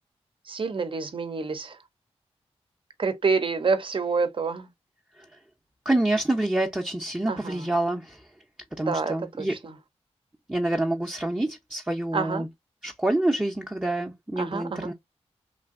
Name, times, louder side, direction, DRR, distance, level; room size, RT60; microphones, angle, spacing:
voice 1, 0.5-1.7 3.0-4.7 7.3-7.5 8.9-9.1 12.1-12.4 14.4-14.8, right 4 dB, 50° right, 0.7 m, -27 dB
voice 2, 5.8-8.3 8.8-9.6 10.5-12.5 12.8-14.9, right 1 dB, 10° right, 0.6 m, -27 dB
3.2 x 2.6 x 2.5 m
cardioid pair, 55°, 11 cm